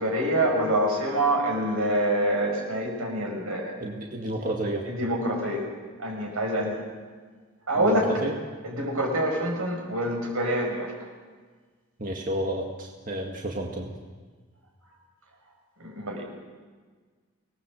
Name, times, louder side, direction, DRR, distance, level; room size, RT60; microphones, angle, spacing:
voice 1, 0.0-3.8 4.8-5.7 6.0-6.8 7.7-8.1 8.6-10.9 15.8-16.2, right 1 dB, 85° right, 1 dB, 6.5 m, -26 dB
voice 2, 3.8-4.8 7.7-8.3 12.0-13.9, right 1 dB, 40° right, 0 dB, 2.0 m, -31 dB
25.5 x 19.5 x 7.8 m, 1.5 s
head